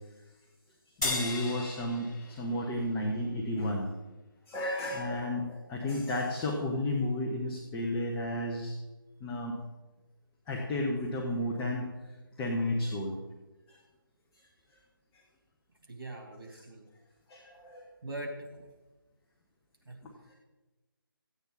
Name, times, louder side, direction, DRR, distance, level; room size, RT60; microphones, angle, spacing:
sound 1, 1.0-3.6, left 2 dB, 45° left, 2.7 m, -37 dB
voice 1, 1.0-3.9 4.5-8.7 9.2-9.5 10.5-11.9 12.4-13.2 13.7-13.8 17.3-17.9 20.0-20.3, left 1 dB, 10° left, -3 dB, 1.0 m, -32 dB
voice 2, 15.9-16.8 18.0-18.6 19.9-20.0, right 1 dB, 65° right, 1 dB, 3.6 m, -41 dB
14.5 x 8.8 x 4.1 m, 1.1 s
figure-of-eight pair, 155°, 12 cm